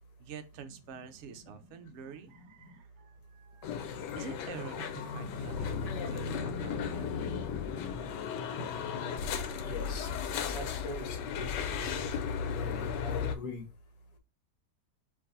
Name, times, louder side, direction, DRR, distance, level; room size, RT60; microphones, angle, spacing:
voice 1, 0.2-3.8 4.1-7.2 8.0-8.1, right 7 dB, 70° right, 0.7 m, -47 dB
sound 1, 3.6-13.4, left 6 dB, 85° left, 1.3 m, -35 dB
voice 2, 9.6-10.1 10.5-12.1 12.5-13.6, left 3 dB, 70° left, 1.5 m, -42 dB
4.8 x 2.6 x 3.9 m
omnidirectional pair, 1.8 m